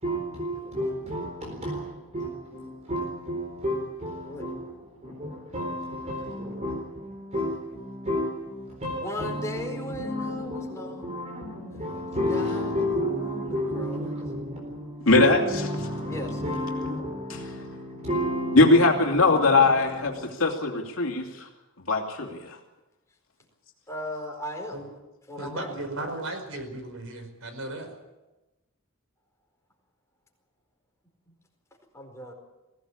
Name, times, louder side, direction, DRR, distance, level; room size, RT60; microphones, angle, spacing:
voice 1, 0.0-20.3, equal, 30° right, 1 dB, 4.1 m, -32 dB
voice 2, 4.2-4.5 5.5-5.8 9.0-11.1 12.1-14.2 16.1-16.4 23.9-24.9 25.3-25.8 31.3-31.4 31.9-32.3, equal, 15° left, 1 dB, 4.6 m, -38 dB
voice 3, 15.1-15.4 17.3-17.4 18.5-21.5 21.9-22.6, left 3 dB, 70° left, 1 dB, 2.9 m, -21 dB
voice 4, 25.4-27.9, right 2 dB, 75° right, 7 dB, 4.9 m, -35 dB
21.5 x 17.0 x 8.7 m, 1.1 s
head